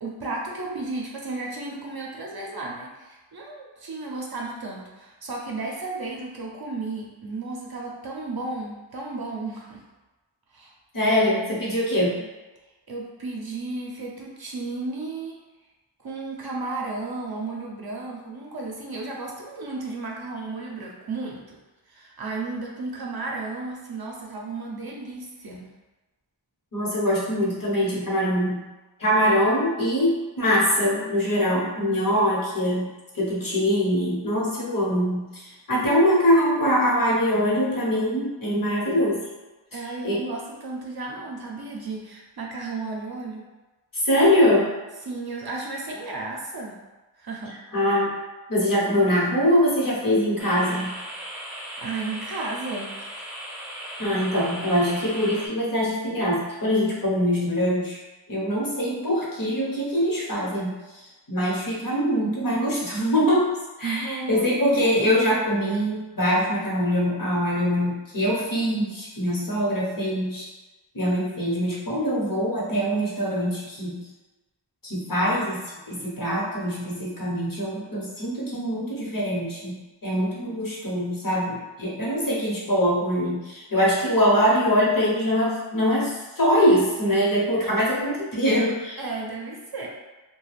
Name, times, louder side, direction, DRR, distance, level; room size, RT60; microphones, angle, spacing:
voice 1, 0.0-9.8 10.5-10.7 12.2-12.3 12.9-15.3 16.0-21.6 21.9-25.7 39.7-43.4 45.0-46.8 47.2-47.6 51.8-53.3 63.8-64.9 89.0-89.9, right 3 dB, 50° right, -2 dB, 0.6 m, -34 dB
voice 2, 10.9-12.1 26.7-28.6 29.0-39.2 40.0-40.2 44.0-44.7 47.7-48.1 48.5-50.9 54.0-58.0 58.3-60.7 61.3-70.5 70.9-74.0 74.8-79.7 80.0-89.0, equal, 45° left, -5 dB, 1.0 m, -23 dB
sound 1, 50.4-55.5, right 1 dB, 5° right, 0.6 m, -37 dB
2.3 x 2.2 x 3.3 m, 1.1 s
wide cardioid pair, 45°, 47 cm